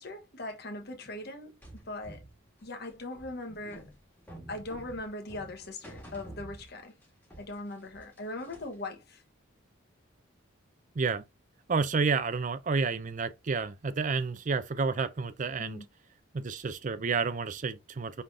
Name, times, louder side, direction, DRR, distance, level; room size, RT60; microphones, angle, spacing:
voice 1, 0.0-2.2 2.6-3.9 4.5-6.9 7.4-9.2 15.6-15.9, left 2 dB, 50° left, 1.2 m, -40 dB
sound 1, 1.6-7.1 7.3-8.9, right 1 dB, 10° left, 1.6 m, -49 dB
voice 2, 11.7-15.8 16.3-18.2, right 4 dB, 40° right, 0.4 m, -30 dB
5.5 x 3.3 x 2.6 m
head